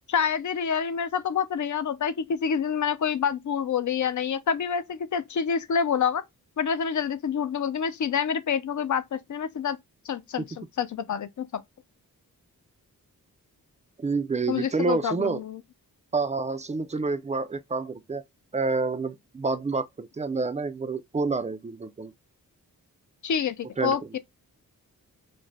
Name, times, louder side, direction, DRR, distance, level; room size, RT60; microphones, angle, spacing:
voice 1, 0.1-6.2 6.6-9.8 10.0-11.6 14.5-15.6 23.2-24.2, left 7 dB, 55° left, 0.5 m, -27 dB
voice 2, 14.0-15.4 16.1-18.2 18.5-22.1 23.8-24.0, right 4 dB, 20° right, 0.3 m, -28 dB
2.5 x 2.1 x 3.1 m
cardioid pair, 75°, 35 cm